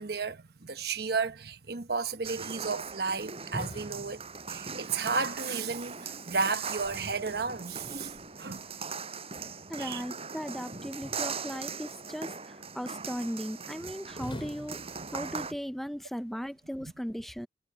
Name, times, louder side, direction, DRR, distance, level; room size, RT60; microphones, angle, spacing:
voice 1, 0.0-4.2 4.5-8.7 9.8-10.0 14.1-14.5 15.1-15.5, right 4 dB, 60° right, 1.1 m, -33 dB
sound 1, 2.2-15.5, right 5 dB, 35° right, 6.5 m, -40 dB
sound 2, 3.5-5.0 6.3-8.3 11.0-11.8 14.2-15.6, equal, 30° left, 5.3 m, -45 dB
voice 2, 9.7-14.8 15.1-17.5, equal, ahead, 0.5 m, -37 dB
head